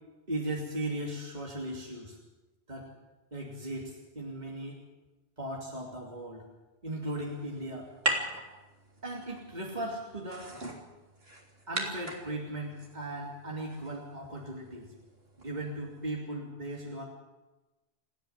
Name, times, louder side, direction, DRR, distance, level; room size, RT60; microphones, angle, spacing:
voice 1, 0.3-2.2 2.7-2.9 3.3-4.8 5.4-6.4 6.8-7.9 9.0-10.5 11.7-14.9 15.4-17.0, right 1 dB, 45° right, -2 dB, 3.0 m, -37 dB
sound 1, 7.0-16.0, right 2 dB, 70° right, 3.9 m, -40 dB
29.0 x 10.5 x 9.5 m, 1.1 s
omnidirectional pair, 1.1 m